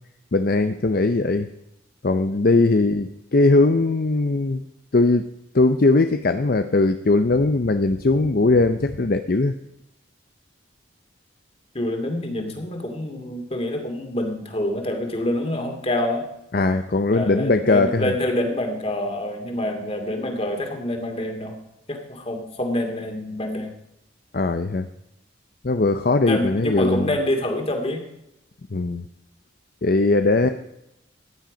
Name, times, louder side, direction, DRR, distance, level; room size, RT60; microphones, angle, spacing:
voice 1, 0.3-1.5 2.0-4.6 4.9-5.2 5.5-9.5 16.5-18.1 24.3-24.9 25.6-27.1 28.7-29.0 29.8-30.5, left 2 dB, 50° left, 9 dB, 0.6 m, -19 dB
voice 2, 11.7-16.3 17.1-21.6 21.9-23.7 26.2-28.0 30.2-30.4, left 1 dB, 30° left, 4 dB, 2.5 m, -26 dB
15.0 x 10.5 x 5.1 m, 0.85 s
head